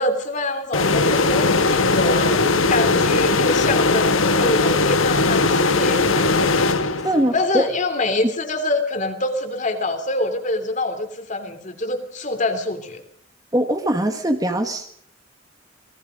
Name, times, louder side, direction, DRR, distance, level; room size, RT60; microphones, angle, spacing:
voice 1, 0.0-6.3 7.3-13.0, left 2 dB, 35° left, 7 dB, 3.0 m, -25 dB
sound 1, 0.7-7.4, left 3 dB, 85° left, 1.6 m, -19 dB
voice 2, 7.0-7.7 8.2-8.3 13.5-14.9, right 1 dB, 20° right, 6 dB, 1.5 m, -21 dB
28.5 x 19.5 x 5.2 m, 0.62 s
head